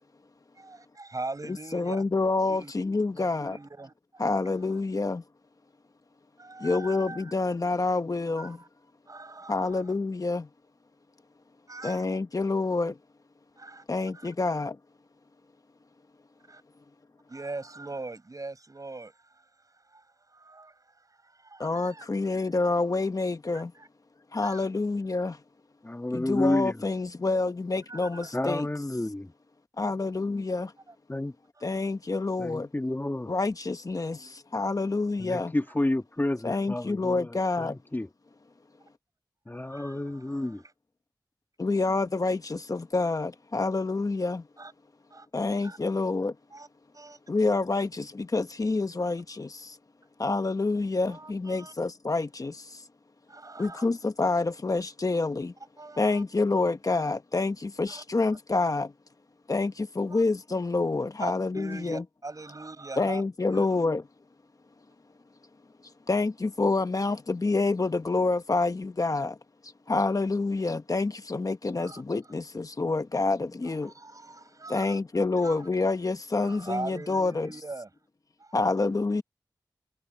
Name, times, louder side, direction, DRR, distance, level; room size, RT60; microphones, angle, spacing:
voice 1, 0.6-2.0 2.5-2.7 3.1-4.2 4.6-4.8 6.4-7.3 8.4-8.7 9.1-9.9 11.7-12.0 13.6-13.8 14.1-14.3 16.5-16.6 17.3-22.1 23.5-23.9 24.4-24.7 27.9-28.3 30.9-31.0 31.5-31.7 35.7-35.8 39.5-40.7 44.6-44.7 45.1-45.3 45.6-45.8 46.5-46.7 46.9-47.2 49.0-49.1 51.1-51.7 53.3-53.9 55.8-56.2 57.9-58.0 60.1-60.2 61.2-63.2 63.5-63.7 71.8-72.3 73.6-75.0 75.4-75.7 76.3-77.9 78.4-78.7, right 3 dB, 50° right, 7.0 m, -42 dB
voice 2, 1.7-3.6 4.2-5.2 6.6-8.6 9.5-10.5 11.8-13.0 13.9-14.8 21.6-23.7 24.3-25.4 26.1-28.7 29.8-30.7 31.6-32.7 33.3-35.5 36.4-37.8 41.6-44.5 45.3-46.3 47.3-49.8 50.2-52.8 53.6-55.5 56.0-58.9 59.5-62.0 63.0-64.0 66.1-69.4 69.9-73.9 74.7-77.5 78.5-79.2, left 3 dB, 50° left, 1.2 m, -27 dB
voice 3, 25.8-26.7 28.3-29.3 31.1-31.3 32.4-33.3 35.2-37.3 37.6-38.1 39.5-40.6, left 1 dB, 25° left, 1.6 m, -30 dB
cardioid pair, 45°, 8 cm